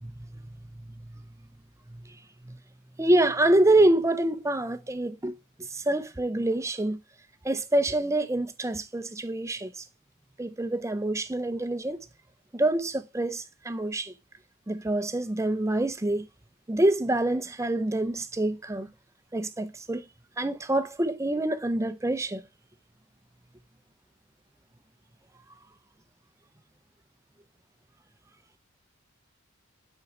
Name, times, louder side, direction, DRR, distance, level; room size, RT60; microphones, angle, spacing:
voice 1, 3.0-5.4 5.7-7.0 7.4-9.8 10.4-12.0 12.5-14.1 14.7-16.3 16.7-18.9 19.3-20.0 20.4-22.4, right 1 dB, 15° right, 0.5 m, -26 dB
8.6 x 4.5 x 4.2 m
head